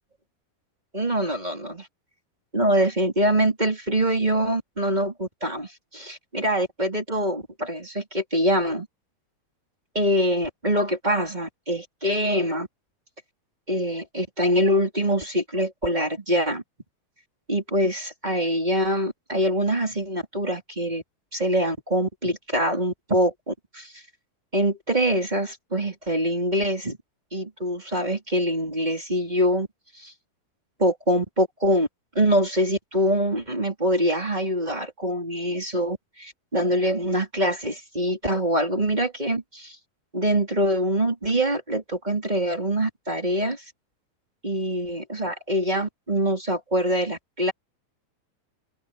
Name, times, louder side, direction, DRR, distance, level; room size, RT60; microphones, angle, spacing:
voice 1, 0.9-1.9 2.5-8.9 9.9-12.7 13.7-16.6 17.5-21.0 21.3-24.0 24.5-27.0 27.3-29.7 30.0-30.1 30.8-31.9 32.1-39.8 40.1-43.6 44.4-47.5, equal, 10° right, 3.8 m, -24 dB
omnidirectional pair, 4.5 m